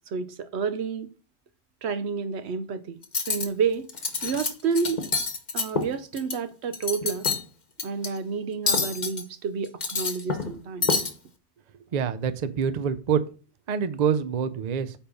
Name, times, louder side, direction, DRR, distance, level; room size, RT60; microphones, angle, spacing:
voice 1, 0.1-1.1 1.8-3.0 3.3-3.9 4.2-5.0 5.5-7.3 7.8-10.9, right 5 dB, 70° right, 1.0 m, -29 dB
Cutlery silverware, 3.0-3.5 3.9-4.5 4.8-6.4 6.7-7.4 7.8-8.1 8.7-9.2 9.7-10.5 10.8-11.1, left 4 dB, 40° left, 1.1 m, -27 dB
voice 2, 11.9-13.2 13.7-14.9, right 7 dB, 45° right, 0.6 m, -26 dB
8.8 x 3.6 x 5.2 m
omnidirectional pair, 1.2 m